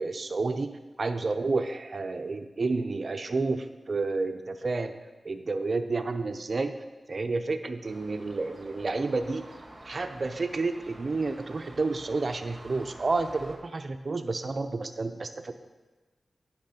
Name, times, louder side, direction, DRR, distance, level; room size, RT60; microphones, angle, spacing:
voice 1, 0.0-5.0 5.2-6.7 7.1-9.4 9.9-15.5, right 3 dB, 50° right, 8 dB, 0.6 m, -30 dB
sound 1, 7.8-13.6, right 1 dB, 30° right, 1.2 m, -49 dB
9.7 x 6.1 x 4.3 m, 1.2 s
wide cardioid pair, 70°, 0 cm